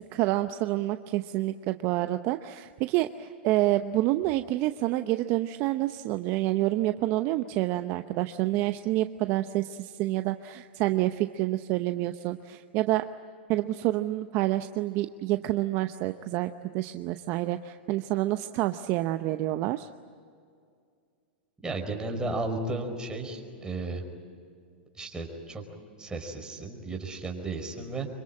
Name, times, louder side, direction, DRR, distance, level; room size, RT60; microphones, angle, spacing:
voice 1, 0.1-13.0 13.5-19.9, right 16 dB, 45° right, 9 dB, 0.8 m, -28 dB
voice 2, 21.6-24.0 24.9-25.6 26.0-28.1, right 2 dB, 15° right, 2 dB, 5.0 m, -34 dB
25.5 x 23.5 x 8.8 m, 2.3 s
hypercardioid pair, 115°, 6 cm